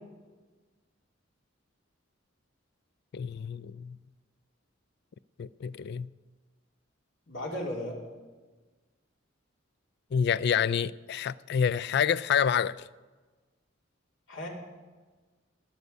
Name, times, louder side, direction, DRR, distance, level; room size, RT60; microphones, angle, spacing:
voice 1, 3.1-4.0 5.4-6.1 10.1-12.9, left 7 dB, 55° left, 0.3 m, -28 dB
voice 2, 7.3-8.0 14.3-14.5, left 1 dB, 80° left, 2.8 m, -35 dB
19.5 x 8.2 x 5.3 m
head